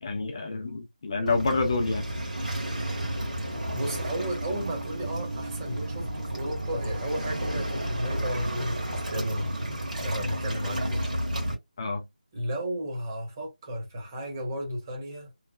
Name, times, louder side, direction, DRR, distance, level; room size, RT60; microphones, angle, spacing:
voice 1, 0.0-2.1 11.8-12.0, left 3 dB, 35° left, 0.5 m, -28 dB
Waves surf, 1.3-11.5, right 1 dB, 60° right, 1.6 m, -32 dB
voice 2, 3.7-9.6 10.0-11.0 12.3-15.3, equal, 25° right, 1.0 m, -33 dB
3.2 x 2.1 x 2.2 m
figure-of-eight pair, 160°, 5 cm